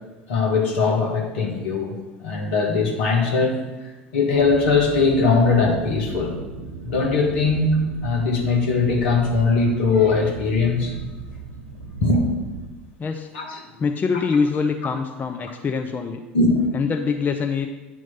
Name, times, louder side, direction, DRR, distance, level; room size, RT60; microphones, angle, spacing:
voice 1, 0.3-1.9 2.2-3.5 4.1-6.4 6.8-10.9 12.0-12.2 13.3-13.6 16.3-16.6, left 4 dB, 70° left, 0 dB, 1.4 m, -20 dB
sound 1, 4.3-12.7, right 2 dB, 75° right, 0.7 m, -36 dB
voice 2, 13.8-16.2 16.7-17.7, left 5 dB, 25° left, 5 dB, 0.5 m, -24 dB
9.2 x 3.1 x 5.6 m, 1.2 s
figure-of-eight pair, 75°, 7 cm